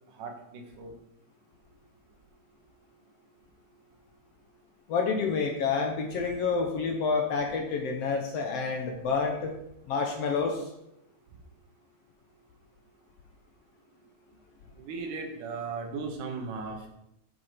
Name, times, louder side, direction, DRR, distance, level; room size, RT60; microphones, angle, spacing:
voice 1, 0.1-0.9 14.8-16.9, right 4 dB, 85° right, 3 dB, 2.9 m, -37 dB
voice 2, 4.9-9.5 9.9-10.6, left 5 dB, 65° left, 3 dB, 1.7 m, -28 dB
8.4 x 8.0 x 4.5 m, 0.81 s
omnidirectional pair, 3.6 m